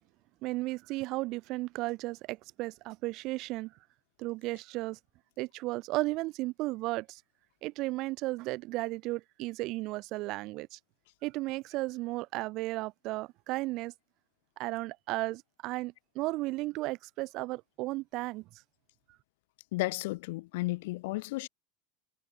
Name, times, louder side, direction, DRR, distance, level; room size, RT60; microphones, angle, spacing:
voice 1, 0.4-3.7 4.2-5.0 5.4-7.2 7.6-10.8 11.2-13.9 14.6-18.4, right 20 dB, 55° right, 3.6 m, -34 dB
voice 2, 19.7-21.5, left 21 dB, 70° left, 7.5 m, -33 dB
hypercardioid pair, 90°, 0 cm